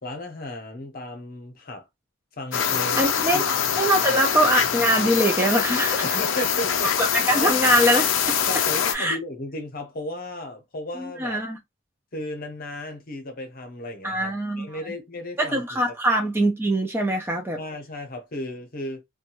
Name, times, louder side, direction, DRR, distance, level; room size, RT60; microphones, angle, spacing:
voice 1, 0.0-1.9 2.4-3.4 6.0-6.9 7.3-7.5 8.5-11.4 12.1-15.8 16.1-16.3 17.6-19.0, left 1 dB, 45° left, 0.8 m, -34 dB
sound 1, 2.5-8.9, left 8 dB, 65° left, 0.4 m, -24 dB
voice 2, 3.0-6.2 7.0-8.4 8.9-9.2 11.0-11.6 14.0-14.9 15.4-17.6, right 1 dB, 10° right, 0.4 m, -23 dB
2.6 x 2.2 x 2.9 m
head